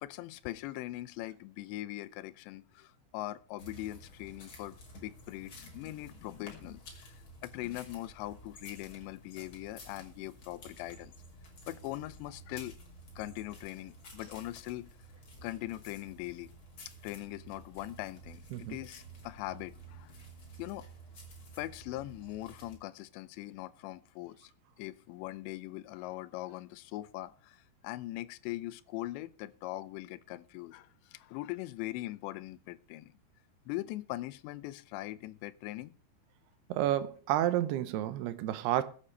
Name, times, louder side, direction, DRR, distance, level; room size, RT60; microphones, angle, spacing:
voice 1, 0.0-11.1 11.7-12.8 13.2-14.9 15.4-16.5 17.0-20.1 20.6-20.9 21.6-24.5 24.8-33.2 33.7-35.9, left 17 dB, 85° left, 2.8 m, -41 dB
sound 1, 3.6-22.8, right 1 dB, 30° left, 3.1 m, -52 dB
voice 2, 36.7-38.8, right 13 dB, 75° right, 2.6 m, -30 dB
21.0 x 8.7 x 3.3 m
omnidirectional pair, 5.1 m